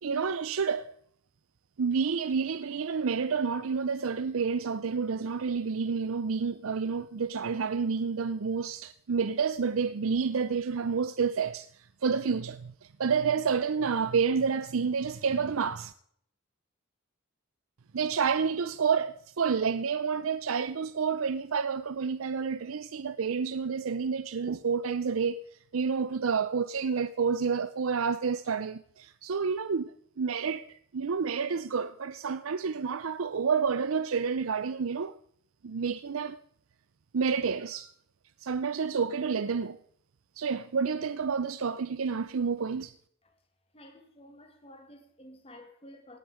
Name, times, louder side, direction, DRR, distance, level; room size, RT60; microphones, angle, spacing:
voice 1, 0.0-0.9 1.8-15.9 17.9-25.4 25.7-35.1 35.6-36.4 37.1-37.9 38.4-39.8 40.4-42.9, right 5 dB, 75° right, 0.5 m, -29 dB
voice 2, 43.7-46.2, left 1 dB, 25° left, 2.2 m, -52 dB
17.5 x 9.4 x 5.0 m
head